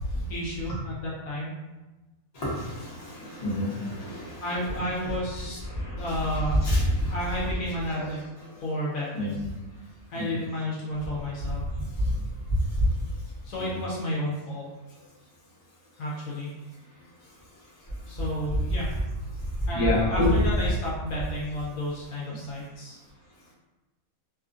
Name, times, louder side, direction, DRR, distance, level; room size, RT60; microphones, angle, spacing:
voice 1, 0.3-1.6 4.4-5.6 6.0-6.6 7.1-8.2 8.6-9.4 10.1-11.6 13.4-14.7 16.0-16.5 18.1-18.9 19.7-23.0, equal, 70° left, -5 dB, 1.0 m, -32 dB
voice 2, 3.4-4.2 6.1-7.1 7.9-8.1 9.1-9.3 13.6-13.7 19.7-20.3, left 1 dB, 30° left, -8 dB, 0.8 m, -26 dB
2.6 x 2.4 x 2.5 m, 1.1 s
omnidirectional pair, 1.6 m